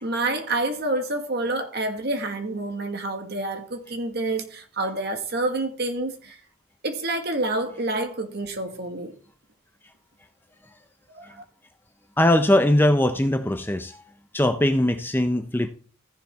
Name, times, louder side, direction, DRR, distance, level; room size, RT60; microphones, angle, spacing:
voice 1, 0.0-6.4 6.8-9.1 11.1-11.4, right 2 dB, 50° right, 1.7 m, -28 dB
voice 2, 12.2-14.0 14.3-15.7, left 1 dB, 10° left, 0.6 m, -20 dB
14.5 x 7.2 x 3.5 m
head